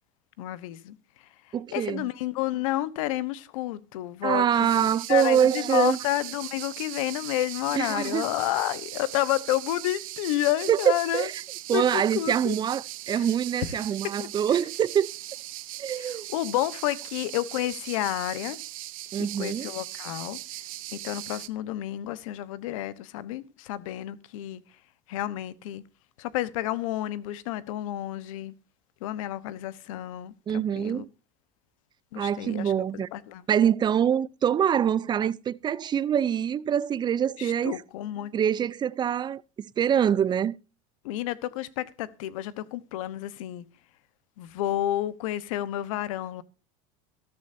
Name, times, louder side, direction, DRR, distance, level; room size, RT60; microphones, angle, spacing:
voice 1, 0.4-4.7 5.1-11.3 11.7-12.6 13.1-13.3 13.6-14.3 15.9-18.6 19.4-20.4 20.9-24.6 25.1-25.8 26.2-28.5 29.0-31.0 32.1-33.4 37.4-38.3 41.0-43.6 44.4-46.4, left 14 dB, 80° left, 1.1 m, -30 dB
voice 2, 1.5-2.1 4.2-6.0 7.7-8.3 10.7-11.3 11.7-15.1 15.8-16.3 19.1-19.7 30.5-31.1 32.2-33.1 33.5-37.8 38.3-40.5, right 9 dB, 25° right, 0.5 m, -25 dB
sound 1, 4.6-21.5, right 16 dB, 85° right, 1.0 m, -39 dB
13.5 x 13.5 x 2.7 m
supercardioid pair, 115°, 17 cm